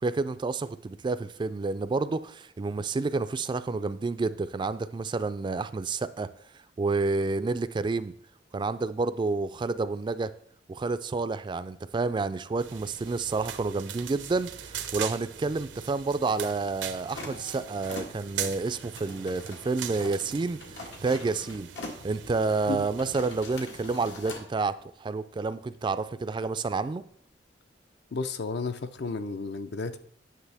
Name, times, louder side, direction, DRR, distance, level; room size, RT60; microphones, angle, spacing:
voice 1, 0.0-6.3 6.8-8.1 8.5-10.3 10.7-20.6 21.0-21.7 22.0-27.0, right 3 dB, 25° right, 13 dB, 0.3 m, -29 dB
sound 1, 12.6-23.5, right 8 dB, 90° right, 0.7 m, -40 dB
sound 2, 17.1-24.5, left 2 dB, 85° left, 1.6 m, -44 dB
voice 2, 28.1-30.0, left 4 dB, 65° left, 10 dB, 0.5 m, -32 dB
9.5 x 6.2 x 3.4 m, 0.62 s
head